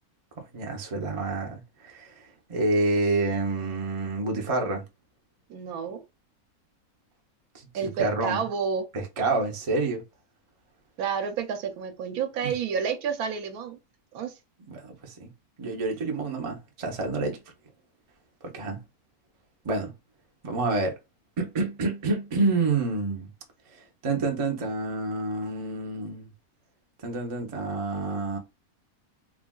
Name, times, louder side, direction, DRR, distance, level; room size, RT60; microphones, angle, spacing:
voice 1, 0.5-2.1 2.5-4.8 7.8-8.4 8.9-10.0 14.7-15.3 15.6-17.4 18.5-18.8 19.6-19.9 20.4-20.9 21.4-23.3 24.0-26.3 27.0-28.4, right 3 dB, 40° right, 0.4 m, -28 dB
voice 2, 5.5-6.0 7.7-8.9 11.0-13.8 14.1-14.3, right 6 dB, 75° right, 1.0 m, -30 dB
3.4 x 2.3 x 2.2 m
omnidirectional pair, 1.6 m